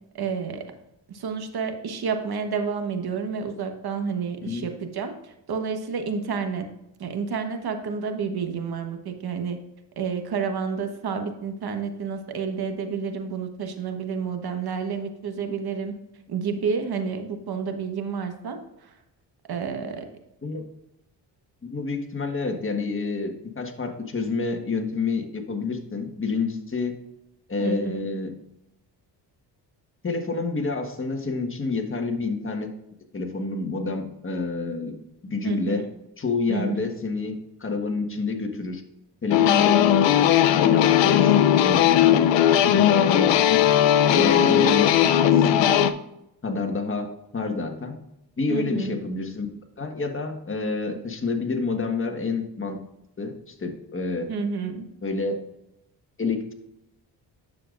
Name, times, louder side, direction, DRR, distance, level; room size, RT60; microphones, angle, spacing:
voice 1, 0.1-0.6 1.1-6.6 7.0-9.6 10.0-15.9 16.3-18.9 19.5-20.1 27.6-28.1 35.4-35.9 36.5-36.9 39.4-39.8 44.2-44.6 48.5-49.0 54.3-54.9, right 5 dB, 60° right, 6 dB, 1.3 m, -30 dB
voice 2, 21.6-27.0 27.5-28.3 30.0-32.7 33.1-34.9 35.2-35.8 36.2-38.8 39.2-39.9 40.4-42.2 42.6-43.6 44.1-45.8 46.4-47.9 48.4-49.5 49.8-52.8 53.2-54.3 55.0-55.3 56.2-56.5, left 4 dB, 30° left, 4 dB, 1.5 m, -28 dB
sound 1, 39.3-45.9, left 10 dB, 80° left, 0.6 m, -18 dB
9.8 x 6.9 x 2.5 m, 0.85 s
cardioid pair, 85°, 43 cm